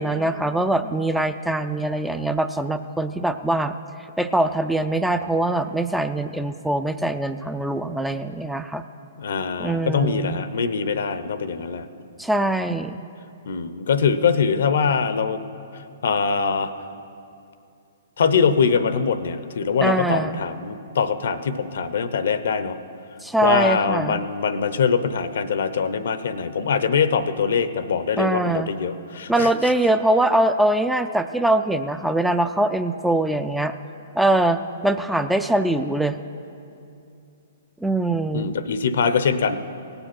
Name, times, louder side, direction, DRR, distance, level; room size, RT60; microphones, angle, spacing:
voice 1, 0.0-3.7 4.2-8.8 9.6-10.4 12.2-13.0 19.8-20.4 23.2-24.2 28.2-28.7 29.3-33.7 34.1-36.2 37.8-38.5, right 1 dB, 5° right, 9 dB, 0.4 m, -22 dB
voice 2, 9.2-11.9 13.5-15.4 16.0-16.7 18.2-22.8 23.4-29.5 38.3-39.6, left 6 dB, 70° left, 13 dB, 0.6 m, -23 dB
17.5 x 6.9 x 6.0 m, 2.6 s
hypercardioid pair, 130°, 0 cm